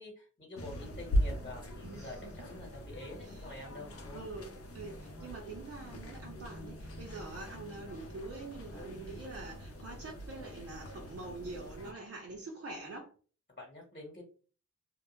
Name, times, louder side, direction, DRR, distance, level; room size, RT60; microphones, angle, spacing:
voice 1, 0.0-4.2 13.6-14.2, left 2 dB, 25° left, -2 dB, 1.1 m, -47 dB
sound 1, 0.6-11.9, equal, 50° left, 0.6 m, -40 dB
voice 2, 1.8-2.3 3.2-3.5 4.1-13.1, right 3 dB, 50° right, -1 dB, 0.6 m, -45 dB
2.1 x 2.0 x 3.0 m, 0.39 s
cardioid pair, 65°, 30 cm